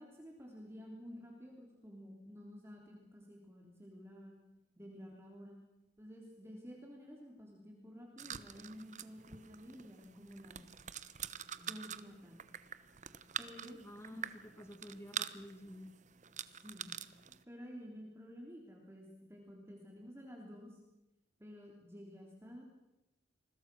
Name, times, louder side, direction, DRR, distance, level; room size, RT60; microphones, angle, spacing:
voice 1, 0.0-4.3 4.8-5.6 6.0-10.7 11.6-12.4 13.4-13.8 14.1-14.2 16.5-17.0 17.5-20.8 21.4-22.6, equal, 15° right, 0 dB, 3.4 m, -52 dB
sound 1, 8.2-17.4, right 8 dB, 45° right, 1.0 m, -46 dB
voice 2, 13.8-15.9, equal, 15° left, 5 dB, 2.1 m, -50 dB
28.0 x 21.5 x 6.2 m, 0.97 s
head